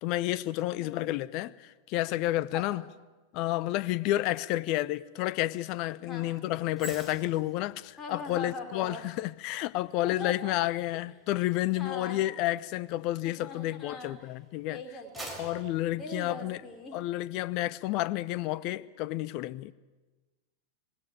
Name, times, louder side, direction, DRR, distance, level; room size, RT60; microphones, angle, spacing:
voice 1, 0.0-2.8 3.3-14.8 15.4-16.6 16.9-19.7, left 16 dB, 40° left, 0.7 m, -30 dB
voice 2, 2.5-2.9 6.0-6.3 8.0-9.1 10.0-10.6 11.7-12.2 13.2-14.3 14.7-17.0, left 2 dB, 25° left, 3.8 m, -42 dB
sound 1, 6.7-14.1 14.6-17.0 17.3-17.6, right 1 dB, 5° right, 4.3 m, -50 dB
19.0 x 17.5 x 9.2 m
figure-of-eight pair, 90°, 0 cm